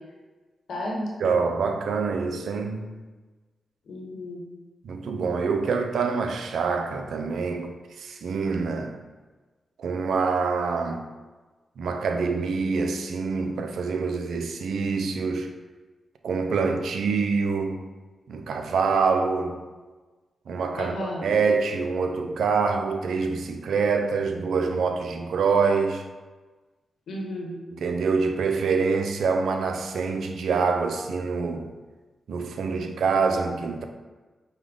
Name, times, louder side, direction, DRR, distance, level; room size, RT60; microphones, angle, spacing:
voice 1, 0.7-1.1 3.9-4.4 20.7-21.2 27.1-27.6, left 1 dB, 75° left, -3 dB, 1.0 m, -33 dB
voice 2, 1.2-2.9 4.8-8.9 9.8-11.0 11.8-15.5 16.2-17.8 18.3-19.6 20.5-26.0 27.8-31.7 32.3-33.8, right 5 dB, 80° right, 5 dB, 0.4 m, -25 dB
4.9 x 2.2 x 3.7 m, 1.3 s
supercardioid pair, 45°, 0 cm